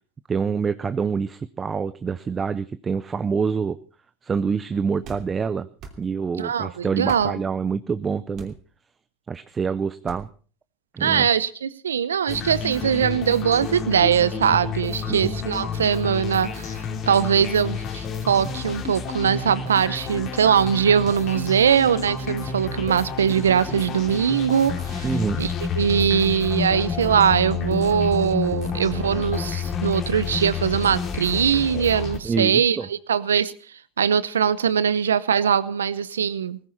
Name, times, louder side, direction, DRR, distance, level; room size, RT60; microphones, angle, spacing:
voice 1, 0.3-3.8 4.2-5.7 6.0-8.5 9.3-10.3 10.9-11.3 15.1-15.4 25.0-25.4 32.2-32.9, right 5 dB, 25° right, 13 dB, 0.7 m, -26 dB
sound 1, 5.0-5.3 5.8-6.0 7.1-7.3 8.3-8.6 10.1-10.3, right 5 dB, 50° right, 3.0 m, -41 dB
voice 2, 6.4-7.4 11.0-25.1 25.4-33.5 34.0-36.6, right 8 dB, 85° right, 19 dB, 0.7 m, -21 dB
sound 2, 12.3-32.2, left 5 dB, 45° left, 2.8 m, -30 dB
18.0 x 15.0 x 4.3 m, 0.39 s
hypercardioid pair, 85°, 0 cm